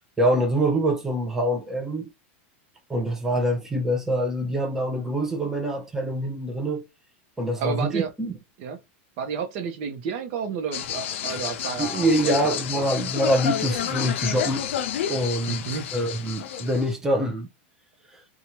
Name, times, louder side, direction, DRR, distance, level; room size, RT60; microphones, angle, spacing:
voice 1, 0.2-2.1 2.9-6.8 7.4-8.3 11.8-14.7 15.1-17.5 18.1-18.2, right 1 dB, 5° right, 0.7 m, -25 dB
voice 2, 7.6-8.1 8.6-8.8 9.2-12.4 12.7-12.8 15.5-15.9, right 6 dB, 50° right, 0.8 m, -31 dB
sound 1, 10.7-16.9, left 10 dB, 80° left, 0.5 m, -30 dB
2.8 x 2.3 x 3.0 m
supercardioid pair, 140°, 7 cm